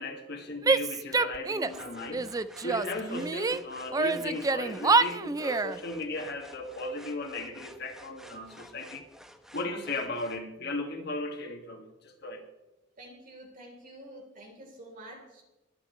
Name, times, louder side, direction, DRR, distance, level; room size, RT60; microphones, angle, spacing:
voice 1, 0.0-2.3 2.6-9.0 9.5-12.4, left 2 dB, 60° left, 3 dB, 2.1 m, -36 dB
Female speech woman speaking / Yell, 0.6-1.8 2.1-3.6 3.9-5.8, right 3 dB, 20° right, 0.4 m, -27 dB
sound 1, 1.6-10.4, equal, 5° right, 0.9 m, -51 dB
voice 2, 13.0-15.4, right 1 dB, 45° right, 1 dB, 3.8 m, -48 dB
22.0 x 9.4 x 3.2 m, 1.0 s
head